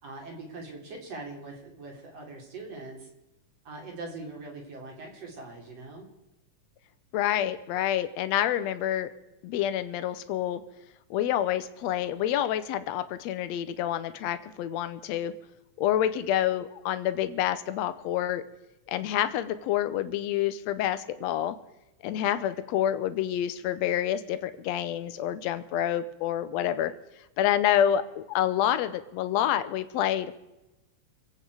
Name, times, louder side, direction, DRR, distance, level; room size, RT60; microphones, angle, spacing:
voice 1, 0.0-3.1 3.6-6.1, right 3 dB, 55° right, 0 dB, 4.3 m, -42 dB
voice 2, 7.1-9.1 9.4-10.6 11.1-15.3 15.8-18.4 18.9-21.6 22.0-26.9 27.4-30.4, left 11 dB, 70° left, 12 dB, 1.9 m, -28 dB
26.0 x 8.8 x 4.8 m, 0.97 s
omnidirectional pair, 3.4 m